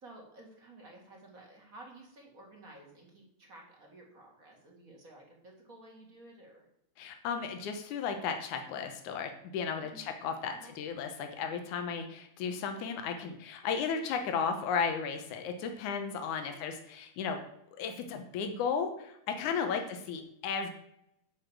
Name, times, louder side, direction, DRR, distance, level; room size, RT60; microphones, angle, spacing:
voice 1, 0.0-6.7 9.8-10.1 10.6-10.7 11.4-11.5 16.4-16.6 19.7-19.9, right 2 dB, 30° right, 0 dB, 2.4 m, -53 dB
voice 2, 7.0-17.4 17.8-20.7, left 6 dB, 85° left, 6 dB, 2.5 m, -34 dB
10.5 x 5.6 x 7.5 m, 0.78 s
omnidirectional pair, 3.5 m